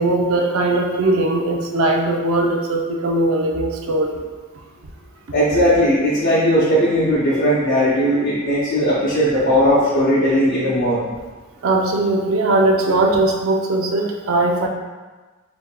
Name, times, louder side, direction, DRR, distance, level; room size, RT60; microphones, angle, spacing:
voice 1, 0.0-4.2 11.6-14.7, right 2 dB, 75° right, 2 dB, 0.5 m, -19 dB
voice 2, 5.3-11.0, equal, 60° left, -8 dB, 0.8 m, -17 dB
4.9 x 3.4 x 2.2 m, 1.3 s
head